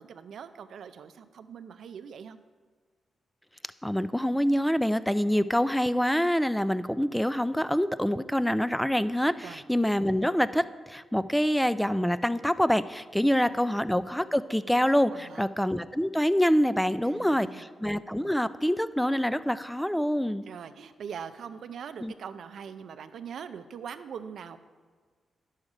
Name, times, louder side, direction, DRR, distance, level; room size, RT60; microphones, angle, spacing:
voice 1, 0.0-2.4 9.4-9.6 13.2-13.8 15.1-15.5 17.0-17.7 20.5-24.6, right 7 dB, 75° right, 11 dB, 0.5 m, -42 dB
voice 2, 3.8-20.4 22.0-22.1, equal, 5° left, 14 dB, 0.3 m, -26 dB
10.5 x 6.4 x 4.9 m, 1.5 s
cardioid pair, 90°, 0 cm